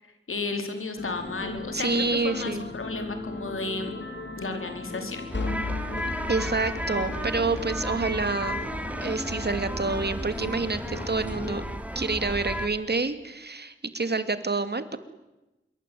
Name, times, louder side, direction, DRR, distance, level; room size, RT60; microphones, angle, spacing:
voice 1, 0.0-3.9 4.4-5.2, left 3 dB, 85° left, 6 dB, 4.6 m, -33 dB
sound 1, 1.0-11.7, left 3 dB, 60° left, 4.2 m, -36 dB
voice 2, 1.7-2.7 6.3-8.6 9.0-11.6 11.9-15.0, right 3 dB, 55° right, 11 dB, 2.6 m, -28 dB
sound 2, 5.3-12.7, equal, 5° right, 3.1 m, -34 dB
26.5 x 22.5 x 9.4 m, 1.0 s
cardioid pair, 45°, 21 cm